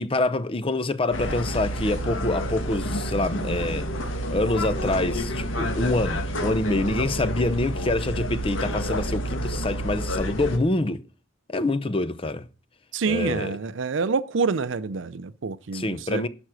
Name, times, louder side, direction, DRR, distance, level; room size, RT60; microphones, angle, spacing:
voice 1, 0.0-3.9 4.3-11.0 11.5-12.5 13.1-13.6 15.7-16.3, left 2 dB, 30° left, 0.7 m, -26 dB
sound 1, 1.1-10.6, equal, 90° left, 1.9 m, -29 dB
voice 2, 12.9-16.3, right 4 dB, 75° right, 0.5 m, -27 dB
11.5 x 6.0 x 6.3 m
head